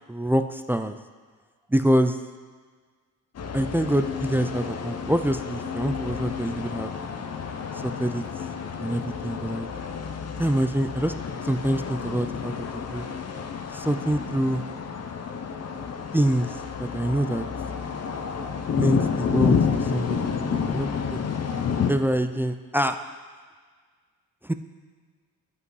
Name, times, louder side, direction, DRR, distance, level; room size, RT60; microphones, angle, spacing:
voice 1, 0.1-1.0 1.7-2.2 3.5-6.9 7.8-8.2 8.8-9.7 10.4-11.1 11.4-13.0 13.7-14.6 16.1-17.4 18.7-21.2 21.9-23.0 24.4-24.5, right 1 dB, 5° right, 8 dB, 0.3 m, -25 dB
sound 1, 3.3-21.9, left 6 dB, 45° left, 0.7 m, -30 dB
9.9 x 5.5 x 4.7 m, 1.6 s
cardioid pair, 90°, 34 cm